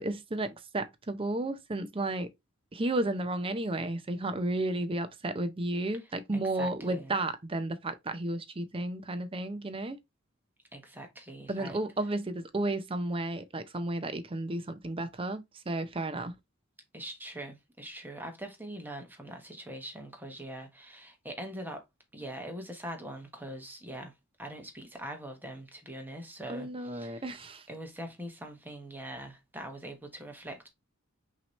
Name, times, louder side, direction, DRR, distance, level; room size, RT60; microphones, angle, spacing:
voice 1, 0.0-2.3 2.7-10.0 11.5-16.3 26.5-27.7, right 2 dB, 25° right, 0.6 m, -33 dB
voice 2, 6.3-7.1 10.7-11.8 16.9-21.8 22.1-27.2 27.7-30.7, right 1 dB, 10° right, 1.1 m, -43 dB
5.9 x 2.9 x 3.1 m
head